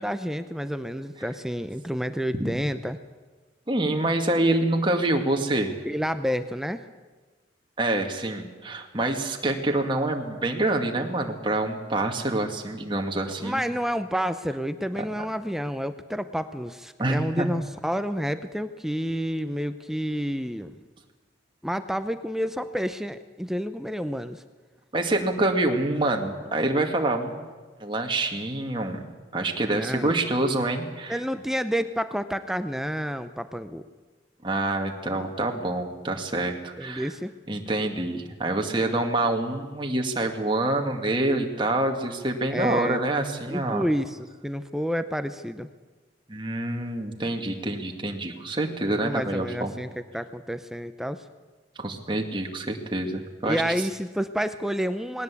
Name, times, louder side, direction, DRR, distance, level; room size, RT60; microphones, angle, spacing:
voice 1, 0.0-3.0 5.8-6.9 13.1-20.8 21.6-24.4 29.6-30.1 31.1-33.8 36.8-37.3 42.5-43.0 43.5-45.7 49.0-51.2 53.4-55.2, equal, ahead, 10 dB, 0.6 m, -29 dB
voice 2, 3.7-5.7 7.8-13.6 17.0-17.5 24.9-27.5 27.8-29.0 29.3-31.2 34.4-37.1 37.5-43.8 46.3-49.8 51.8-53.6, right 2 dB, 25° right, 3 dB, 2.1 m, -26 dB
20.0 x 17.5 x 8.4 m, 1.3 s
head